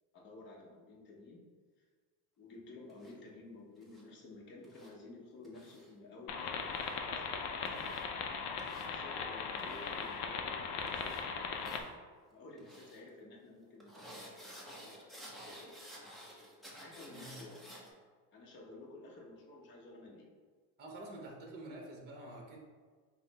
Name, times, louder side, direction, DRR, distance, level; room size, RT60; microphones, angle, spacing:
voice 1, 0.1-1.4 2.4-6.5 7.1-7.9 8.8-11.9 12.3-14.4 14.6-15.7 16.8-17.6 18.3-20.3, left 2 dB, 30° left, -2 dB, 0.8 m, -53 dB
sound 1, 2.9-3.1 3.8-4.0 4.6-4.9 5.4-5.9 6.6-7.0 7.6-8.0 8.6-8.9 9.6-10.2 10.8-11.2 11.6-11.9 12.6-13.0 13.8-17.9, equal, ahead, 0.5 m, -53 dB
sound 2, 6.3-11.8, left 5 dB, 55° left, 0.5 m, -39 dB
voice 2, 20.8-22.6, right 1 dB, 25° right, 0 dB, 0.8 m, -48 dB
5.4 x 2.1 x 4.0 m, 1.5 s
cardioid pair, 145°, 39 cm